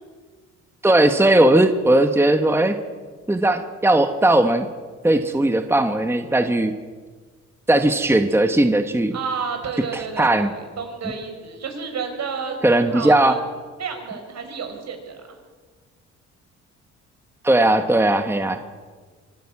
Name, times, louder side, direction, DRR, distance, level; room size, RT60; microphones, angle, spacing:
voice 1, 0.8-2.8 3.3-4.7 5.0-6.7 7.7-9.2 9.9-10.5 12.6-13.4 17.4-18.6, right 1 dB, 10° right, 7 dB, 1.3 m, -18 dB
voice 2, 9.1-12.6 12.9-13.4 13.8-15.2 18.5-18.6, right 5 dB, 60° right, 5 dB, 5.1 m, -31 dB
24.5 x 12.5 x 8.6 m, 1.5 s
cardioid pair, 90°, 30 cm